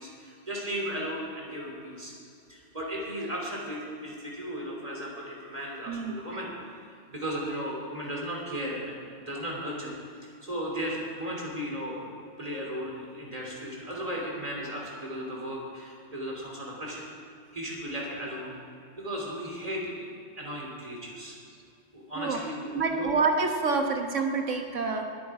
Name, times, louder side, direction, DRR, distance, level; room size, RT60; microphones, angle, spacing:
voice 1, 0.0-2.1 2.5-6.5 7.1-9.9 10.2-12.1 12.4-17.0 17.5-18.5 19.0-20.1 20.4-21.4 21.9-23.1, equal, 30° right, -3 dB, 3.2 m, -35 dB
voice 2, 22.7-25.0, right 4 dB, 85° right, 4 dB, 1.6 m, -27 dB
20.5 x 9.3 x 4.8 m, 2.4 s
omnidirectional pair, 1.3 m